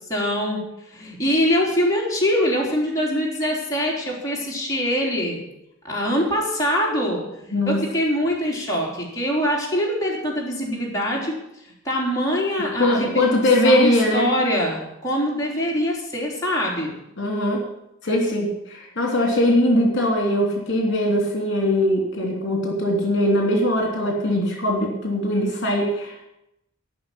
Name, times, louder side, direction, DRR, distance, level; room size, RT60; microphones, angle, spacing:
voice 1, 0.1-0.6 0.9-5.4 5.8-11.4 11.6-13.3 13.6-16.9, equal, 15° left, -5 dB, 3.6 m, -23 dB
voice 2, 7.5-7.8 12.8-14.3 17.2-17.6 18.0-26.2, left 1 dB, 60° left, 0 dB, 3.1 m, -21 dB
14.5 x 6.1 x 9.9 m, 0.84 s
head